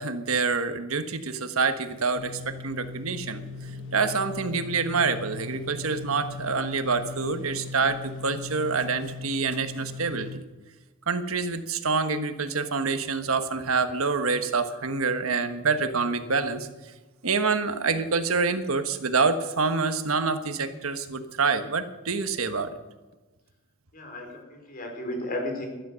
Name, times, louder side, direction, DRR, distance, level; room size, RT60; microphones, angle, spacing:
voice 1, 0.0-3.4 3.9-10.4 11.1-16.7 17.2-22.8, right 4 dB, 90° right, 8 dB, 1.3 m, -26 dB
sound 1, 2.1-10.4, left 3 dB, 65° left, 1.2 m, -39 dB
voice 2, 23.9-25.7, left 1 dB, 45° left, 2 dB, 4.4 m, -34 dB
13.0 x 12.5 x 6.9 m, 1.2 s
head